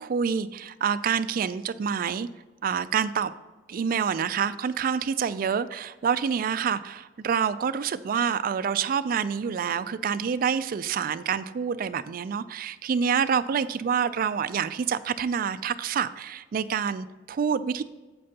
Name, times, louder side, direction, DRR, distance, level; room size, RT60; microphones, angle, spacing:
voice 1, 0.0-2.3 2.6-3.3 3.7-17.8, right 7 dB, 50° right, 14 dB, 0.3 m, -27 dB
8.6 x 7.7 x 2.8 m, 1.3 s
head